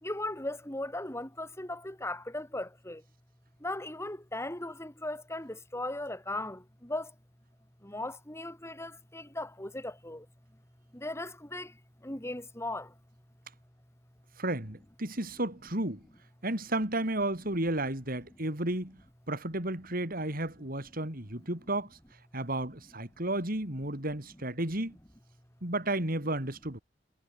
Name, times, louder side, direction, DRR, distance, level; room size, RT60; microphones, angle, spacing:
voice 1, 0.0-3.0 3.6-7.1 7.8-10.2 10.9-11.7 12.0-12.9, left 1 dB, 15° left, 5.9 m, -37 dB
voice 2, 14.4-16.0 16.4-19.0 19.3-22.0 22.3-25.0 25.6-26.8, right 1 dB, 50° right, 6.2 m, -33 dB
head